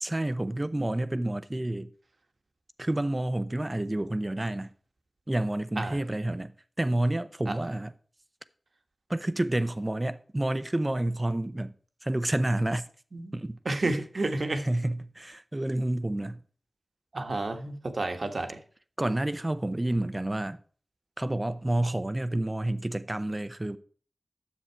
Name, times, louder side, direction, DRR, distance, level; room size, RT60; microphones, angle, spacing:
voice 1, 0.0-1.9 2.8-4.7 5.3-7.9 9.1-11.7 12.0-12.9 13.3-13.9 14.2-16.4 19.0-20.6 21.2-23.8, right 1 dB, 25° right, 0.6 m, -29 dB
voice 2, 13.1-14.6 17.1-18.6, right 2 dB, 65° right, 1.3 m, -31 dB
10.0 x 7.4 x 4.6 m
wide cardioid pair, 50°, 0 cm